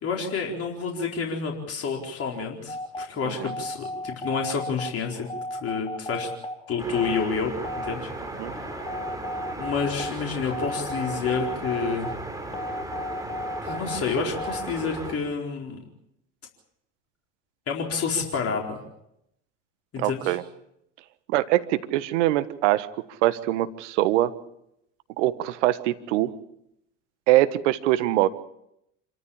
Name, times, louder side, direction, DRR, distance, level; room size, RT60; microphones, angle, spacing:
voice 1, 0.0-6.3 6.7-7.5 7.8-8.1 9.6-12.1 13.6-15.8 17.7-18.8 19.9-20.4, left 5 dB, 40° left, 0 dB, 4.5 m, -29 dB
sound 1, 2.7-14.7, left 1 dB, 15° left, 3.4 m, -35 dB
sound 2, 6.8-15.1, right 2 dB, 10° right, 6.0 m, -36 dB
voice 2, 20.0-20.4 21.3-22.9 23.2-24.3 25.2-26.3 27.3-28.3, right 15 dB, 70° right, 13 dB, 1.5 m, -23 dB
27.0 x 14.0 x 8.7 m, 0.79 s
hypercardioid pair, 80°, 37 cm